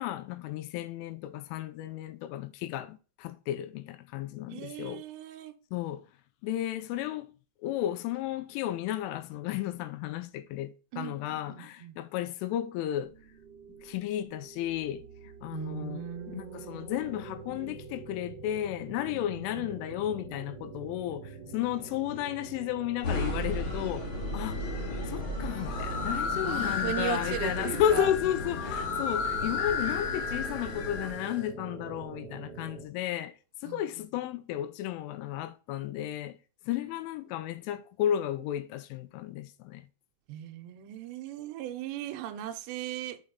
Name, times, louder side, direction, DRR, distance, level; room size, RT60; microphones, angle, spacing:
voice 1, 0.0-5.0 5.7-6.1 6.4-7.3 7.6-13.1 13.8-24.1 24.3-24.6 25.0-33.3 33.6-36.4 36.7-39.9, left 11 dB, 90° left, 3.1 m, -33 dB
voice 2, 4.5-5.5 10.9-12.0 15.5-17.5 19.1-19.7 26.4-28.1 33.6-33.8 40.3-43.2, right 11 dB, 80° right, 2.7 m, -38 dB
sound 1, 13.0-32.8, right 4 dB, 35° right, 1.9 m, -45 dB
sound 2, 23.0-31.1, left 1 dB, 35° left, 2.2 m, -36 dB
sound 3, 25.6-31.4, left 5 dB, 65° left, 2.7 m, -34 dB
6.3 x 5.9 x 3.9 m
omnidirectional pair, 5.6 m